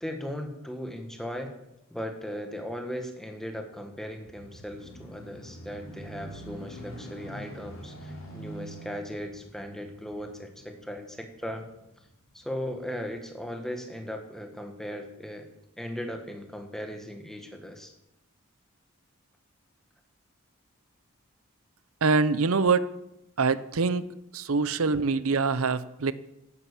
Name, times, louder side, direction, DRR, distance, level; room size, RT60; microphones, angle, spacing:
voice 1, 0.0-1.5 1.9-11.7 12.3-15.5 15.8-17.9, equal, ahead, 4 dB, 1.6 m, -37 dB
sound 1, 3.9-12.4 13.1-13.2, right 1 dB, 60° left, 4.1 m, -45 dB
voice 2, 22.0-22.9 23.4-24.1 24.3-26.1, right 4 dB, 75° right, 15 dB, 0.7 m, -24 dB
11.5 x 9.8 x 8.5 m, 0.87 s
head